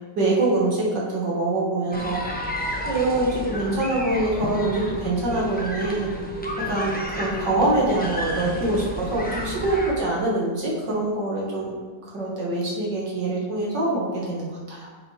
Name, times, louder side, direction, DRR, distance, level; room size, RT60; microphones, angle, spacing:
voice 1, 0.2-2.2 2.9-6.1 6.7-11.8 12.1-14.9, right 2 dB, 85° right, -4 dB, 2.4 m, -24 dB
sound 1, 1.9-9.9, equal, 10° left, 0.5 m, -31 dB
9.4 x 4.8 x 3.4 m, 1.4 s
omnidirectional pair, 1.8 m